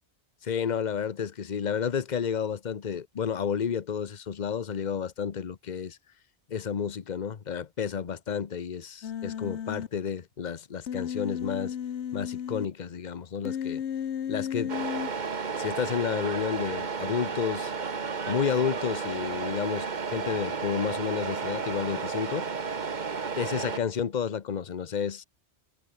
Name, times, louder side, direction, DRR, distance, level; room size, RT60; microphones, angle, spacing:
voice 1, 0.4-6.0 6.5-11.8 12.1-13.8 14.3-14.7 15.6-17.7 18.3-22.5 23.4-25.2, left 7 dB, 45° left, 1.0 m, -31 dB
Human voice, 9.0-9.9 10.9-12.7 13.5-15.1, left 9 dB, 85° left, 1.2 m, -33 dB
Truck, 14.7-23.8, right 5 dB, 45° right, 1.3 m, -33 dB
omnidirectional pair, 1.1 m